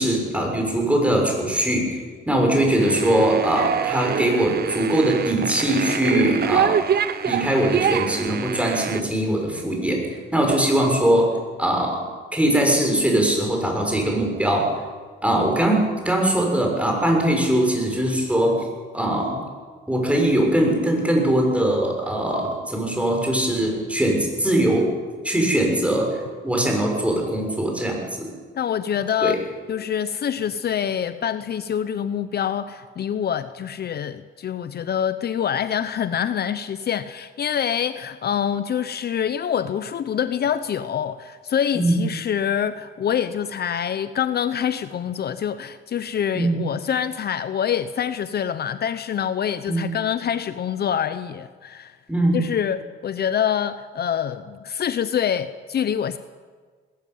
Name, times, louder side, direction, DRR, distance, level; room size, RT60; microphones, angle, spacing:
voice 1, 0.0-2.0 2.3-6.8 7.2-10.0 10.3-11.3 11.6-12.0 12.3-14.7 15.2-18.7 18.9-19.4 19.9-24.9 25.2-28.3 29.2-29.4 41.7-42.0 46.3-46.6 49.7-49.9 52.1-52.4, right 1 dB, 5° right, 1 dB, 6.6 m, -21 dB
sound 1, 2.8-9.0, right 8 dB, 55° right, 0.8 m, -25 dB
voice 2, 28.6-29.4 29.7-52.0 52.3-56.2, left 8 dB, 55° left, 13 dB, 0.8 m, -25 dB
21.0 x 13.0 x 9.4 m, 1.6 s
cardioid pair, 90°, 20 cm